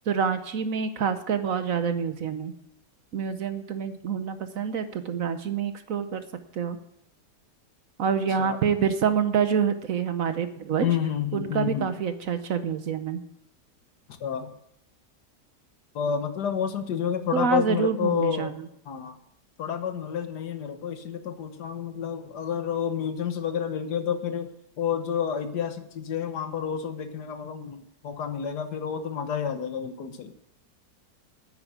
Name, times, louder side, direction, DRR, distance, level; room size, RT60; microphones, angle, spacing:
voice 1, 0.1-2.5 3.1-6.2 6.5-6.8 8.0-10.9 11.3-13.2 17.3-18.6, right 7 dB, 60° right, 10 dB, 1.1 m, -27 dB
voice 2, 10.8-11.9 14.2-14.5 16.0-18.5 18.9-19.2 19.6-24.5 24.8-30.3, left 8 dB, 75° left, 9 dB, 1.6 m, -29 dB
9.6 x 8.9 x 9.2 m, 0.78 s
omnidirectional pair, 1.8 m